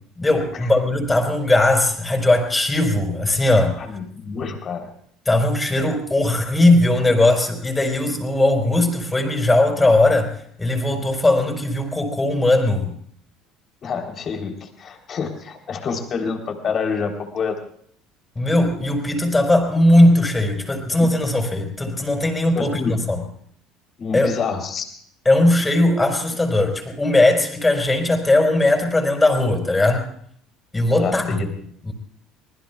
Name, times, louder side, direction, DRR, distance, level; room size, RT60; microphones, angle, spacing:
voice 1, 0.2-3.8 5.3-12.9 18.3-23.2 24.1-24.3 25.2-30.1 30.7-31.5 31.8-31.9, left 1 dB, 15° left, 3 dB, 4.7 m, -18 dB
voice 2, 3.8-4.9 13.8-17.6 21.0-21.1 22.6-23.0 24.0-24.8 31.0-31.7, left 5 dB, 45° left, 3 dB, 3.6 m, -27 dB
25.5 x 20.0 x 2.4 m, 0.62 s
hypercardioid pair, 65°, 0 cm